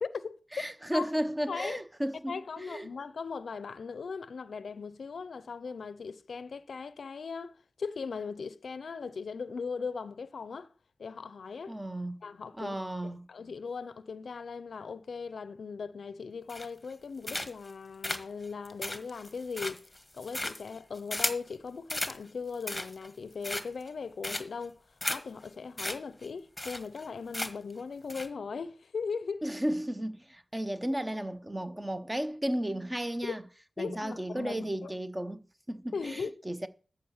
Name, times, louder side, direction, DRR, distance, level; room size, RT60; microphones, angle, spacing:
voice 1, 0.0-0.4 0.9-1.1 1.5-1.8 2.3-10.7 11.0-11.8 12.2-12.8 13.0-19.9 20.1-24.8 25.1-29.4 33.2-33.4 33.8-34.9 35.9-36.3, left 5 dB, 80° left, 0.6 m, -39 dB
voice 2, 0.5-2.9 11.7-12.2 12.6-13.3 29.4-33.4 33.8-36.7, equal, 15° right, 0.8 m, -34 dB
sound 1, 16.5-16.9 17.2-17.7 18.0-21.5 21.9-22.2 22.5-23.1 23.4-23.9 24.2-24.6 25.0-25.2 25.5-25.6 25.8-26.0 26.2-26.3 26.6-27.0 27.3-27.7 28.1-28.3, left 1 dB, 15° left, 1.3 m, -35 dB
13.5 x 4.8 x 7.2 m
wide cardioid pair, 85°, 0 cm